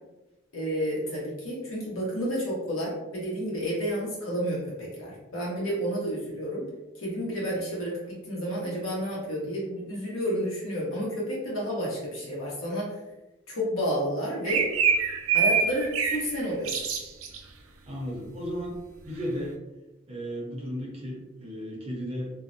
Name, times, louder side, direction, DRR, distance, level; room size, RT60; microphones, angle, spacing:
voice 1, 0.5-6.6 7.0-13.0 13.5-14.7 15.3-16.8, equal, 70° left, -5 dB, 1.0 m, -30 dB
sound 1, 14.5-16.3 16.6-17.4, right 6 dB, 70° right, 0.4 m, -25 dB
voice 2, 17.9-18.7 19.0-19.5 20.1-22.3, equal, 30° right, -3 dB, 0.6 m, -34 dB
2.5 x 2.1 x 2.6 m, 0.99 s
head